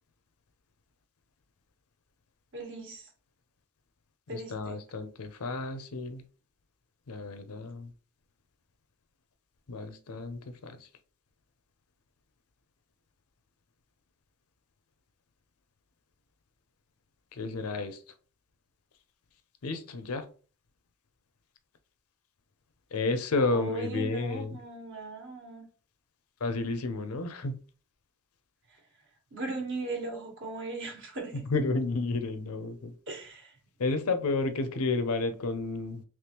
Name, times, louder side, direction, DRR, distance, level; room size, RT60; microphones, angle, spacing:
voice 1, 2.5-3.1 4.3-4.8 23.5-25.6 29.3-31.4 33.1-33.5, right 3 dB, 60° right, 1.2 m, -38 dB
voice 2, 4.3-6.2 7.1-7.9 9.7-10.8 17.3-18.0 19.6-20.3 22.9-24.6 26.4-27.6 31.3-32.9 33.8-36.0, left 3 dB, 80° left, 0.6 m, -31 dB
3.5 x 3.0 x 2.9 m
head